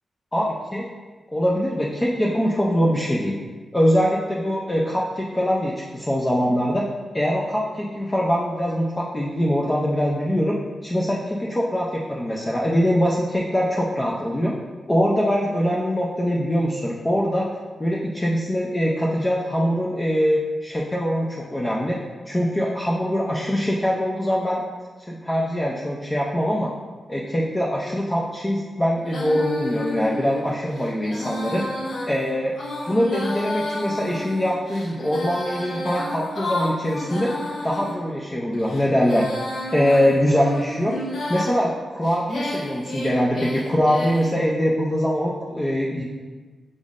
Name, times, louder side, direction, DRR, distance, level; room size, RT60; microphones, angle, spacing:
voice 1, 0.3-0.9 1.3-3.4 3.7-6.9 7.1-10.6 10.8-14.5 14.9-17.5 17.8-22.0 22.3-24.6 25.1-26.7 27.1-31.6 32.1-32.5 32.9-37.3 37.6-39.3 39.7-41.0 41.3-46.0, equal, 15° left, -3 dB, 0.4 m, -23 dB
Female singing, 29.0-38.0 38.5-41.5 42.0-44.3, left 1 dB, 75° left, 0.8 m, -31 dB
5.1 x 3.5 x 2.4 m, 1.4 s
wide cardioid pair, 115°, 0 cm